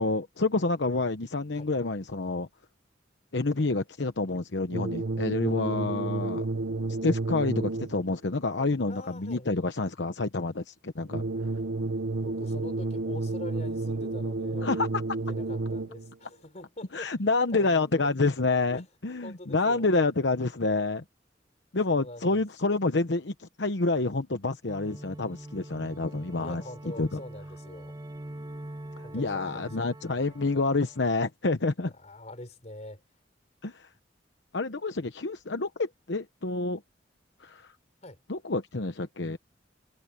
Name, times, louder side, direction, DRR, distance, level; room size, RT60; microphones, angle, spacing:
voice 1, 0.0-2.5 3.3-6.5 7.0-11.2 14.6-15.0 16.9-21.0 21.7-26.6 27.0-27.1 29.1-31.9 33.6-33.9 34.5-36.8 37.4-37.7 38.3-39.4, left 3 dB, 70° left, 1.0 m, -28 dB
sound 1, 4.7-8.1 11.1-16.1, right 2 dB, 75° right, 0.9 m, -31 dB
voice 2, 8.6-9.5 12.2-14.7 15.3-17.1 17.5-18.1 18.7-18.8 19.2-19.8 21.9-22.4 26.4-28.0 29.0-29.9 31.9-33.0 38.0-38.2, left 1 dB, 40° left, 4.4 m, -44 dB
sound 2, 24.7-31.2, right 1 dB, 20° right, 1.1 m, -44 dB
head